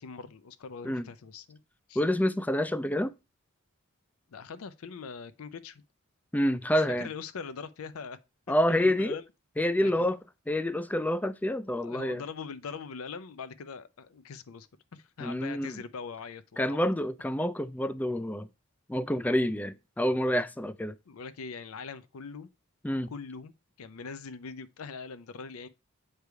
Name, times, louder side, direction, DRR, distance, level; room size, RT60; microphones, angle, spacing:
voice 1, 0.0-1.6 1.9-2.0 4.3-5.8 6.7-8.2 8.5-9.2 9.8-10.1 11.8-14.7 14.9-16.8 21.1-22.5 23.1-23.5 23.8-25.7, left 5 dB, 85° left, 0.5 m, -42 dB
voice 2, 2.0-3.1 6.3-7.1 8.5-9.2 9.6-10.2 10.5-12.2 15.2-15.7 16.6-18.5 18.9-20.9 22.8-23.1, left 1 dB, 10° left, 0.3 m, -28 dB
8.1 x 3.4 x 4.6 m
head